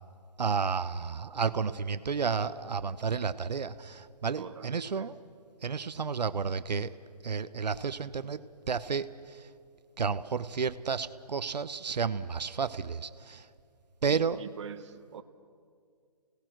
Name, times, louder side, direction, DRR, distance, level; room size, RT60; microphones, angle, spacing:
voice 1, 0.4-5.2 5.6-7.0 7.2-9.5 10.0-13.5 14.0-14.4, right 5 dB, 85° right, 13 dB, 0.8 m, -32 dB
voice 2, 4.4-5.1 14.1-15.2, right 7 dB, 45° right, 9 dB, 1.1 m, -44 dB
28.0 x 18.0 x 6.2 m, 2.2 s
hypercardioid pair, 155°, 21 cm